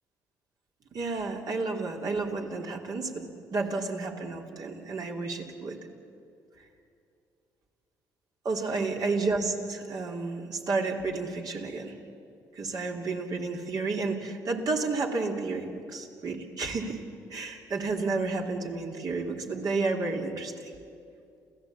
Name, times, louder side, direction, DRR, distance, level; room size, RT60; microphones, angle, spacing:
voice 1, 0.9-5.8 8.4-11.9 12.5-17.0 17.3-20.7, right 3 dB, 55° right, 1 dB, 3.2 m, -31 dB
28.5 x 16.0 x 8.7 m, 2.5 s
supercardioid pair, 65°, 8 cm